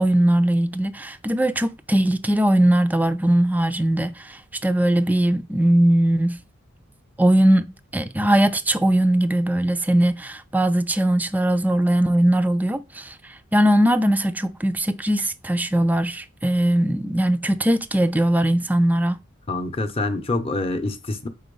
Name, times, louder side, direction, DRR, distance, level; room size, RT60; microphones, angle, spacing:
voice 1, 0.0-6.4 7.2-7.7 7.9-19.2, right 1 dB, 10° right, 0.3 m, -20 dB
voice 2, 19.5-21.3, left 2 dB, 30° left, 0.7 m, -26 dB
4.6 x 4.1 x 5.3 m
head